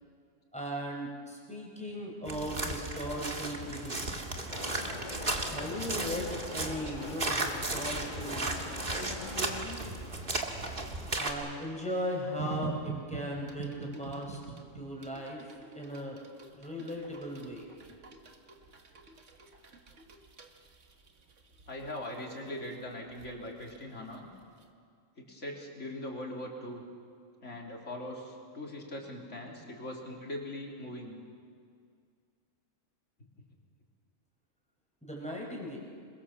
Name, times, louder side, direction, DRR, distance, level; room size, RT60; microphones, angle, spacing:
voice 1, 0.5-4.2 5.5-8.5 8.8-9.8 11.2-14.4 14.8-15.4 15.8-16.3 16.5-17.7 35.0-35.8, equal, 5° left, -2 dB, 5.2 m, -38 dB
sound 1, 2.3-11.3, right 2 dB, 45° right, 2.2 m, -35 dB
sound 2, 4.5-9.6, left 3 dB, 40° left, 1.6 m, -44 dB
sound 3, 12.4-24.2 24.6-24.7, right 5 dB, 70° right, 1.9 m, -44 dB
voice 2, 21.7-24.3 25.2-26.8 27.4-31.2, left 1 dB, 70° left, 0 dB, 3.8 m, -41 dB
27.5 x 22.0 x 7.3 m, 2.2 s
omnidirectional pair, 1.3 m